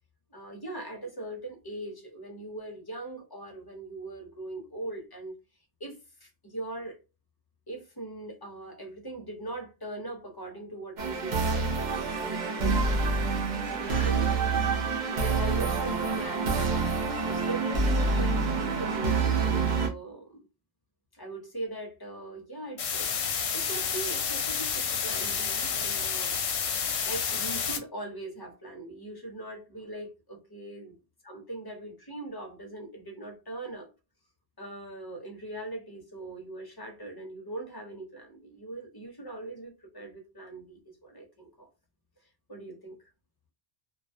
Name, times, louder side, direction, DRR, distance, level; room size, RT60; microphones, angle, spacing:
voice 1, 0.3-5.4 5.8-7.0 7.7-13.5 13.8-14.5 15.1-16.8 17.2-20.4 21.1-23.2 23.5-26.4 27.0-30.9 31.2-33.9 34.6-41.7 42.5-43.0, right 2 dB, 25° left, 0.5 m, -40 dB
sound 1, 11.0-19.9, right 4 dB, 55° right, 0.6 m, -27 dB
sound 2, 22.8-27.8, left 6 dB, 65° left, 0.7 m, -30 dB
2.3 x 2.2 x 2.5 m
omnidirectional pair, 1.1 m